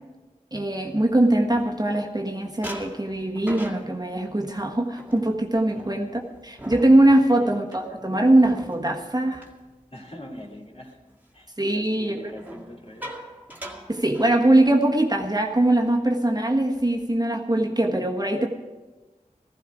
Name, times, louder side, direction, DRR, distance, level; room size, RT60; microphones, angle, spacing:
voice 1, 0.5-6.1 6.4-9.5 11.6-12.3 13.9-18.5, right 1 dB, 30° right, 1 dB, 1.5 m, -21 dB
sound 1, 0.8-2.2 2.6-10.5 10.8-11.1 12.3-14.9 15.2-15.4 15.7-16.0 16.5-17.2, right 1 dB, 10° right, 2.0 m, -42 dB
voice 2, 5.7-6.1 7.4-7.6 9.9-11.1 11.3-13.2 18.3-18.5, left 1 dB, 45° left, -1 dB, 2.7 m, -42 dB
15.5 x 14.5 x 4.9 m, 1.2 s
wide cardioid pair, 40°, 14 cm